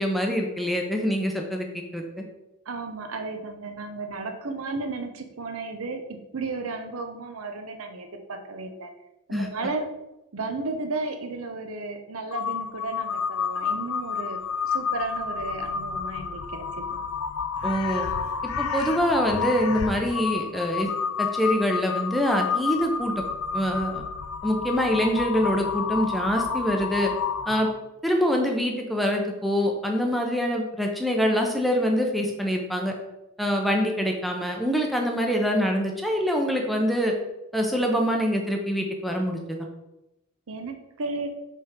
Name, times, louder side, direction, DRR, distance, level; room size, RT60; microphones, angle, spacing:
voice 1, 0.0-2.0 9.3-9.5 17.6-18.1 18.6-20.9 21.2-23.2 23.5-24.0 24.4-27.1 27.5-27.7 28.0-32.9 33.4-37.1 37.5-39.7, equal, ahead, 1 dB, 0.6 m, -25 dB
voice 2, 2.7-8.9 9.3-9.9 10.3-14.4 14.6-16.8 40.5-41.3, right 3 dB, 70° right, 6 dB, 0.7 m, -33 dB
Crow, 12.3-27.8, left 6 dB, 75° left, 0.4 m, -30 dB
5.4 x 3.5 x 5.0 m, 0.94 s
head